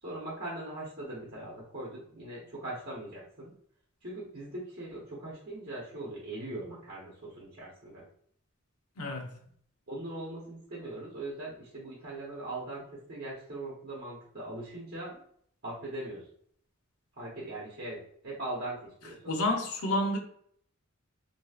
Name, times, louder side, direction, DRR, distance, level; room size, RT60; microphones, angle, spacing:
voice 1, 0.0-3.5 4.0-8.1 9.9-15.2 15.6-16.3 17.2-19.3, right 2 dB, 50° right, 0.9 m, -40 dB
voice 2, 9.0-9.3 19.3-20.2, left 1 dB, 80° left, 0.6 m, -29 dB
3.0 x 2.6 x 2.3 m
head